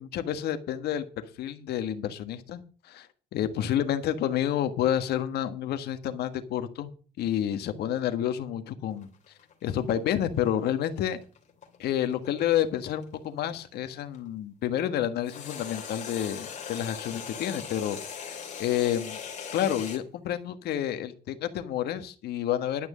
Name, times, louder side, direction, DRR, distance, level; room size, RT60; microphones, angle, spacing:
voice 1, 0.0-3.1 3.3-6.9 7.2-9.1 9.6-11.2 11.8-19.2 19.5-22.9, left 10 dB, 70° left, 9 dB, 1.6 m, -29 dB
sound 1, 9.0-14.2 15.3-20.0, left 7 dB, 45° left, 3.2 m, -40 dB
12.0 x 6.2 x 7.4 m, 0.40 s
cardioid pair, 110°, 17 cm